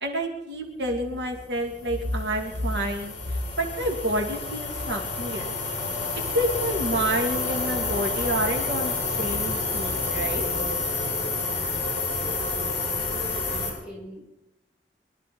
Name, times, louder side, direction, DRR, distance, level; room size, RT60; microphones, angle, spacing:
voice 1, 0.0-5.5 6.1-10.5, right 1 dB, 80° right, 2 dB, 2.4 m, -28 dB
sound 1, 1.5-13.7, left 3 dB, 35° left, 6.1 m, -29 dB
voice 2, 12.2-14.4, left 1 dB, 5° right, -6 dB, 6.8 m, -43 dB
23.0 x 13.0 x 4.3 m, 0.90 s
head